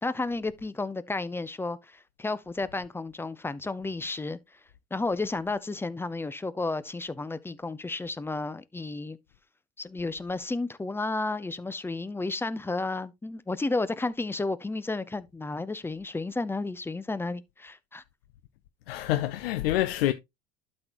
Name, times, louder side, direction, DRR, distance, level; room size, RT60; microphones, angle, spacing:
voice 1, 0.0-4.4 4.9-9.2 9.8-18.0, left 3 dB, 10° left, 0.7 m, -32 dB
voice 2, 18.9-20.1, left 14 dB, 75° left, 0.6 m, -26 dB
12.0 x 4.3 x 3.0 m
hypercardioid pair, 80°, 30 cm